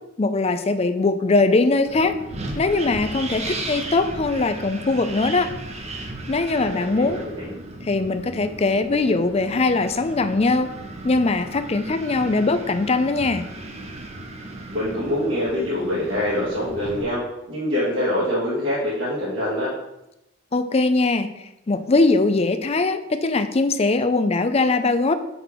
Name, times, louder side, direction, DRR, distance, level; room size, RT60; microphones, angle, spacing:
voice 1, 0.2-2.2 2.6-5.5 6.3-7.2 7.8-10.7 11.0-13.4 20.5-21.3 21.7-25.1, left 3 dB, 30° left, 10 dB, 0.5 m, -21 dB
Wind, 1.8-17.0, right 2 dB, 35° right, 0.9 m, -36 dB
voice 2, 6.6-7.5 14.7-19.7, left 1 dB, 70° right, -9 dB, 2.1 m, -25 dB
5.3 x 4.5 x 6.0 m, 0.88 s
head